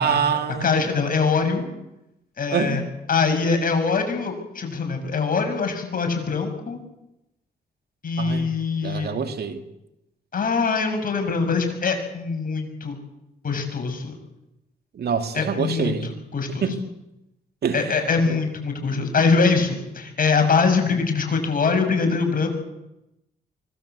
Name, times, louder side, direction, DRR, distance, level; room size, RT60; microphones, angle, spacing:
voice 1, 0.0-1.3 2.5-2.8 8.2-8.5 8.8-9.6 14.9-16.1 16.6-16.9 17.6-18.0 18.3-18.4, right 6 dB, 70° right, 2.6 m, -26 dB
voice 2, 0.6-1.7 2.4-2.8 3.1-6.8 8.0-9.1 10.3-13.0 13.4-14.1 15.3-16.7 17.7-22.5, left 4 dB, 55° left, 7.1 m, -23 dB
24.5 x 18.5 x 8.3 m
cardioid pair, 65°, 17 cm